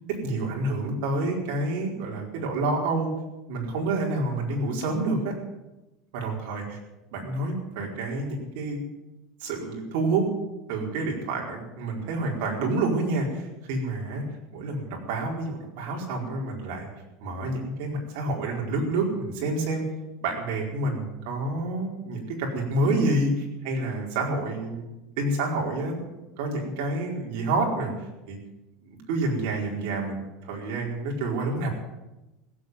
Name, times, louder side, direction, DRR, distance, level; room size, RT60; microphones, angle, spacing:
voice 1, 0.2-3.1 3.4-5.3 6.1-6.8 7.1-8.8 9.4-10.2 10.7-14.2 14.5-16.9 17.2-19.8 20.2-24.8 25.2-26.0 26.4-27.9 28.3-28.4 28.8-31.7, right 2 dB, 65° right, -1 dB, 4.6 m, -28 dB
16.0 x 8.2 x 9.3 m, 1.0 s
supercardioid pair, 160°, 0 cm